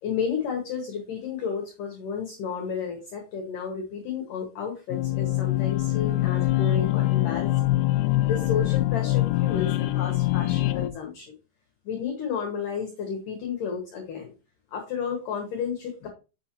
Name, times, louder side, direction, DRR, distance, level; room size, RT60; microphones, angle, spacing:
voice 1, 0.0-7.7 8.2-11.4 11.8-14.3 14.7-16.1, left 6 dB, 70° left, 2 dB, 2.2 m, -32 dB
sound 1, 4.9-10.9, left 16 dB, 85° left, 2.2 m, -24 dB
7.1 x 6.5 x 2.9 m, 0.32 s
omnidirectional pair, 5.0 m